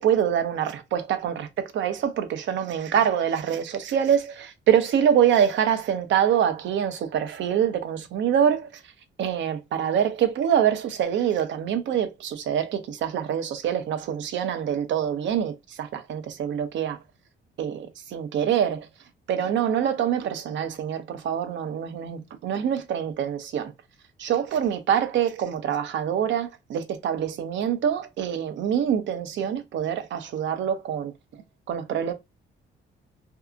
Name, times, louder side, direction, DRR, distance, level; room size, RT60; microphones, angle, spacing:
voice 1, 0.0-8.8 9.2-17.0 17.6-18.9 19.3-23.7 24.2-31.4 31.7-32.1, right 9 dB, 70° right, 0.6 m, -25 dB
2.7 x 2.4 x 2.5 m
cardioid pair, 90°, 20 cm